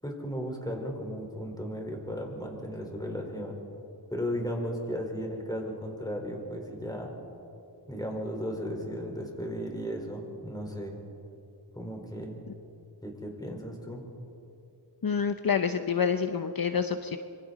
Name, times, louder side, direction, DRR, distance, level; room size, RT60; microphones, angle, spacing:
voice 1, 0.0-3.6 4.1-7.1 7.9-11.0 11.7-12.4 13.0-14.1, equal, 10° left, 1 dB, 4.5 m, -35 dB
voice 2, 15.0-17.2, left 6 dB, 60° left, 8 dB, 0.8 m, -27 dB
26.0 x 24.0 x 4.2 m, 2.7 s
wide cardioid pair, 50°, 40 cm